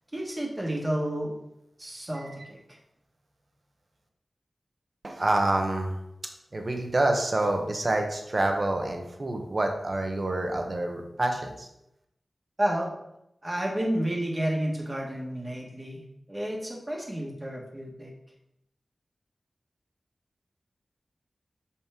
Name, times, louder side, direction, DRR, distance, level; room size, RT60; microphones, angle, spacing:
voice 1, 0.1-1.3 1.8-2.8 12.6-12.9 13.4-16.0 16.3-18.1, right 1 dB, 20° right, -1 dB, 1.5 m, -31 dB
voice 2, 5.0-6.0 6.5-11.7, right 2 dB, 40° right, 3 dB, 1.0 m, -27 dB
6.3 x 5.6 x 3.6 m, 0.83 s
wide cardioid pair, 105°, 0 cm